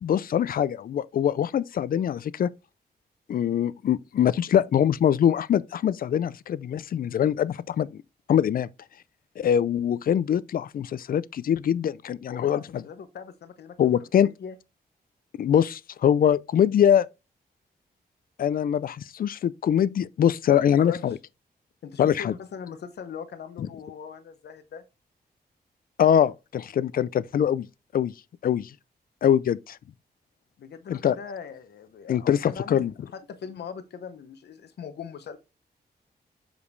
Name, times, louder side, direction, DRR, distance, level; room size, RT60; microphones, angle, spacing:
voice 1, 0.0-2.5 3.3-8.0 8.3-8.7 9.4-12.8 13.8-14.3 15.4-17.1 18.4-21.2 22.0-22.3 26.0-27.7 27.9-28.1 28.4-28.7 29.2-29.8 30.9-31.2 32.1-32.9, left 9 dB, 60° left, 0.4 m, -23 dB
voice 2, 12.3-13.8 14.2-14.6 20.5-21.2 21.8-24.8 30.6-35.4, left 6 dB, 85° left, 0.8 m, -40 dB
7.2 x 5.1 x 3.1 m
wide cardioid pair, 145°, 17 cm